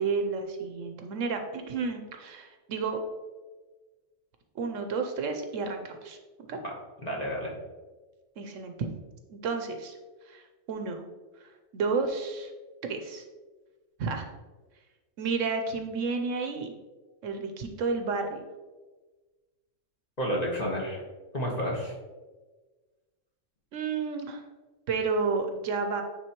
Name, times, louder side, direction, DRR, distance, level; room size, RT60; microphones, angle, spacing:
voice 1, 0.0-3.0 4.6-6.2 6.5-6.6 8.4-8.8 9.3-10.0 10.3-10.4 10.7-11.0 11.7-12.5 12.8-13.2 14.0-14.3 15.2-16.7 17.2-18.4 23.7-24.4 24.9-26.0, right 4 dB, 70° right, 5 dB, 1.0 m, -31 dB
voice 2, 7.0-7.5 20.2-21.0 21.3-21.9, equal, 30° left, -2 dB, 1.2 m, -30 dB
9.1 x 3.7 x 3.0 m, 1.3 s
omnidirectional pair, 1.4 m